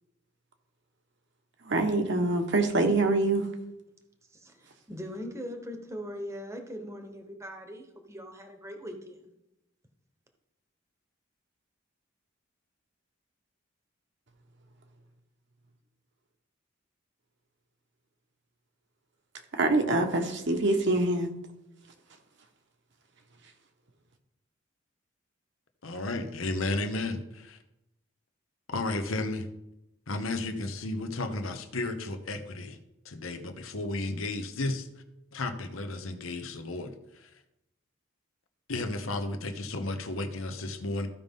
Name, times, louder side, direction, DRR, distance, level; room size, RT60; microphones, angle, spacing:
voice 1, 1.6-3.5 19.5-21.3, right 2 dB, 60° right, 1.2 m, -25 dB
voice 2, 4.3-9.3, equal, 15° right, 1.0 m, -41 dB
voice 3, 25.8-27.6 28.7-29.5 30.1-32.8 33.0-34.9 35.3-37.3 38.7-41.1, left 2 dB, 85° left, 1.0 m, -33 dB
15.0 x 5.3 x 3.7 m
head